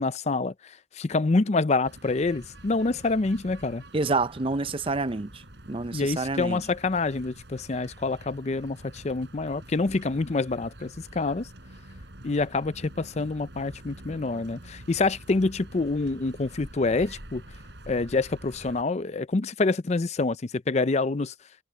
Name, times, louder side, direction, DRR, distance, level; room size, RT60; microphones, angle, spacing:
voice 1, 0.0-3.8 5.9-11.5 12.2-17.4 17.9-21.3, left 3 dB, 35° left, 0.5 m, -27 dB
sound 1, 1.8-18.8, right 1 dB, 65° right, 5.6 m, -47 dB
voice 2, 3.9-6.6, right 3 dB, 30° right, 0.6 m, -28 dB
head